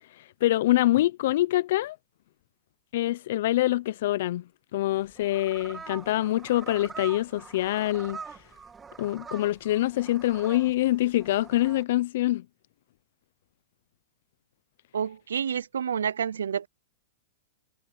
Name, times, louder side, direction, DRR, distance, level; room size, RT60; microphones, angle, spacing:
voice 1, 0.4-2.0 2.9-4.4 4.7-8.2 9.0-12.4, left 15 dB, 65° left, 0.7 m, -25 dB
sound 1, 4.9-11.8, right 5 dB, 15° right, 2.2 m, -44 dB
voice 2, 14.9-16.7, right 7 dB, 85° right, 0.5 m, -29 dB
hypercardioid pair, 120°, 0 cm